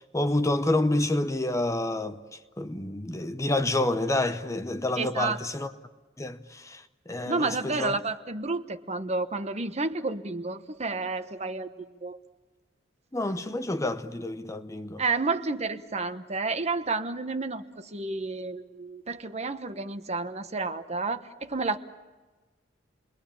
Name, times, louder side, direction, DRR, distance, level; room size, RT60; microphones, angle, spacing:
voice 1, 0.0-5.7 6.2-8.0 13.1-15.0, left 2 dB, 15° left, 0.9 m, -28 dB
voice 2, 5.0-5.4 7.2-11.7 12.0-12.2 15.0-21.8, right 3 dB, 35° right, 1.1 m, -30 dB
29.0 x 21.5 x 8.7 m
head